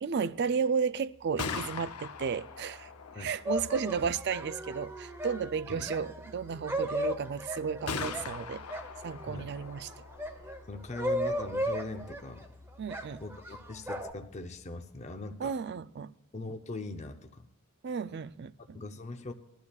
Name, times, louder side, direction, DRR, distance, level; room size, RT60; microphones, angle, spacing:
voice 1, 0.0-2.9 3.2-8.6 9.0-9.9 12.8-13.2 15.4-16.1 17.8-18.8, right 6 dB, 50° right, 0.4 m, -33 dB
Gunshot gunfire, 1.1-15.0, left 5 dB, 85° left, 0.7 m, -44 dB
sound 1, 3.5-9.4 9.9-12.5 12.9-14.1, equal, 10° right, 0.9 m, -36 dB
voice 2, 10.7-12.5 13.2-15.6 16.3-17.5 18.7-19.3, left 2 dB, 30° left, 0.6 m, -41 dB
20.5 x 12.0 x 2.4 m
head